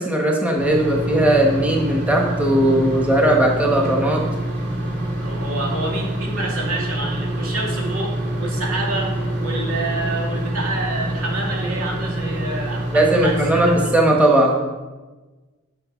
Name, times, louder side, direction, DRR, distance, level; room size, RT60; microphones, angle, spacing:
voice 1, 0.0-4.2 12.9-14.6, right 1 dB, 5° right, 0 dB, 1.3 m, -18 dB
sound 1, 0.6-13.9, right 1 dB, 55° right, 2.5 m, -26 dB
voice 2, 5.2-9.1 9.4-13.4 13.6-13.8, right 2 dB, 90° right, -2 dB, 2.5 m, -28 dB
10.5 x 6.5 x 5.2 m, 1.2 s
head